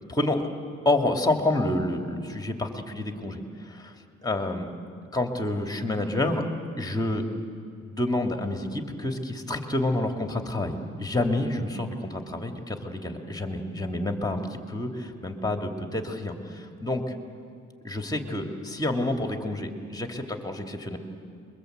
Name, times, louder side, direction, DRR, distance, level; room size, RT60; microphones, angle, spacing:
voice 1, 0.1-0.5 0.8-3.9 4.2-4.7 5.1-6.4 6.8-7.3 7.8-17.1 17.8-21.0, left 2 dB, 15° left, 3 dB, 2.8 m, -28 dB
28.5 x 23.0 x 8.2 m, 2.3 s
cardioid pair, 90°, 30 cm